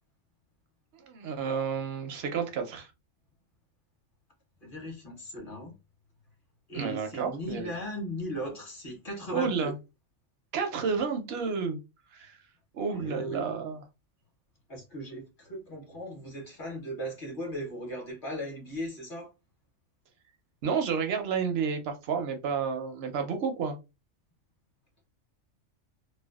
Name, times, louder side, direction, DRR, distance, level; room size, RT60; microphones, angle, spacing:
voice 1, 0.9-2.9 6.7-7.7 9.3-9.8 10.5-11.8 12.1-12.4 12.7-13.8 20.6-23.8, right 6 dB, 65° right, 0.7 m, -31 dB
voice 2, 4.6-5.7 6.7-9.7 12.9-13.5 14.7-19.3, equal, 45° left, 0.9 m, -37 dB
2.5 x 2.1 x 2.3 m
omnidirectional pair, 1.4 m